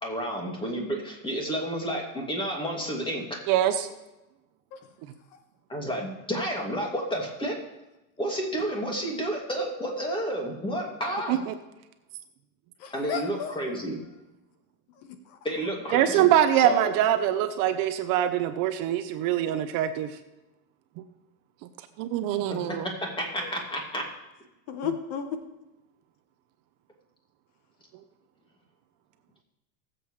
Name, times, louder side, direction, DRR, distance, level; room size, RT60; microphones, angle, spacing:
voice 1, 0.0-3.2 5.7-7.5 8.2-11.4 12.9-14.0 15.4-16.3 16.5-16.9 22.5-24.0, right 1 dB, 10° left, 0 dB, 2.5 m, -31 dB
voice 2, 3.5-3.9 11.3-11.5 15.9-20.1 22.0-22.9, right 11 dB, 50° right, 10 dB, 0.9 m, -24 dB
voice 3, 12.8-13.6 15.0-15.4 23.4-23.5 24.7-25.4, left 7 dB, 50° left, 8 dB, 1.2 m, -34 dB
19.5 x 7.8 x 3.3 m, 1.0 s
supercardioid pair, 125°, 44 cm